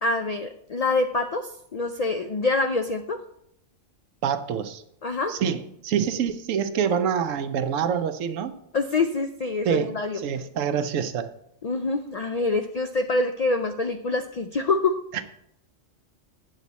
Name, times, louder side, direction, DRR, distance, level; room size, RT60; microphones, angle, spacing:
voice 1, 0.0-3.2 5.0-5.3 8.7-10.2 11.6-14.9, left 3 dB, 80° left, 6 dB, 0.3 m, -25 dB
voice 2, 4.2-4.8 5.3-8.5 9.6-11.3 15.1-15.2, right 8 dB, 85° right, 11 dB, 1.0 m, -26 dB
8.2 x 8.0 x 4.1 m, 0.76 s
omnidirectional pair, 1.3 m